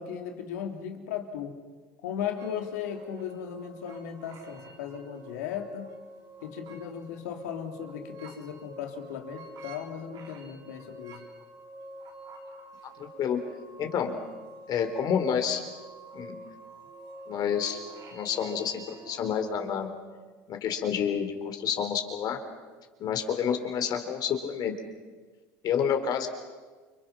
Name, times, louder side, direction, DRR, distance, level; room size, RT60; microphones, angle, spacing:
voice 1, 0.0-1.6 2.0-5.9 6.4-11.2, left 8 dB, 90° left, 4 dB, 3.1 m, -37 dB
sound 1, 2.4-19.9, right 2 dB, 55° right, 3.9 m, -48 dB
voice 2, 13.0-13.4 13.8-14.2 14.7-15.6 16.1-16.4 17.3-17.8 18.1-19.9 20.5-22.4 23.0-24.7 25.6-26.3, left 8 dB, 50° left, 6 dB, 3.9 m, -29 dB
29.5 x 25.0 x 6.0 m, 1.4 s
supercardioid pair, 100°, 9 cm